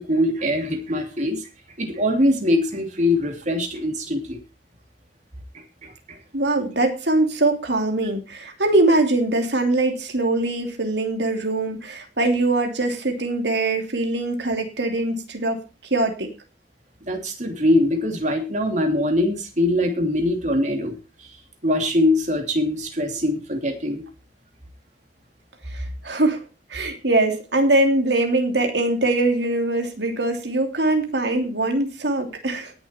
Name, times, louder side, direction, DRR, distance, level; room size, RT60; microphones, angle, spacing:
voice 1, 0.0-1.5 1.8-4.4 5.8-6.2 17.1-20.9 21.6-24.0, left 1 dB, 40° right, 4 dB, 2.9 m, -22 dB
voice 2, 6.3-15.6 15.9-16.3 25.7-26.4 26.7-32.7, right 2 dB, 70° right, 4 dB, 3.0 m, -22 dB
18.0 x 7.4 x 4.4 m, 0.30 s
head